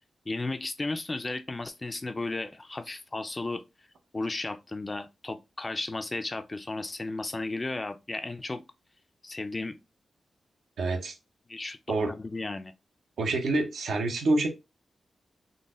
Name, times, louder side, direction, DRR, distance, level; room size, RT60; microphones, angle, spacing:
voice 1, 0.3-3.6 4.1-8.6 9.2-9.8 11.5-12.7, left 2 dB, 25° left, 0.3 m, -34 dB
voice 2, 10.8-11.2 11.9-12.1 13.2-14.5, right 2 dB, 85° right, 0.8 m, -27 dB
3.9 x 2.1 x 3.6 m
wide cardioid pair, 100°, 0 cm